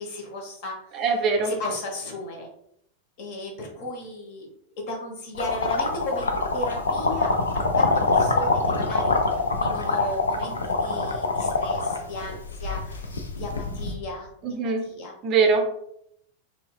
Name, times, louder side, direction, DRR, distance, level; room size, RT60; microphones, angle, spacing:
voice 1, 0.0-1.0 1.4-2.5 3.2-4.5 4.8-14.6 14.8-15.1, left 1 dB, 45° left, 1 dB, 0.9 m, -35 dB
voice 2, 0.9-1.5 14.4-14.9 15.2-15.7, right 4 dB, 35° right, 4 dB, 0.5 m, -22 dB
sound 1, 5.3-13.9, left 3 dB, 70° left, 0.4 m, -25 dB
4.1 x 2.2 x 2.2 m, 0.73 s
figure-of-eight pair, 90°, 0 cm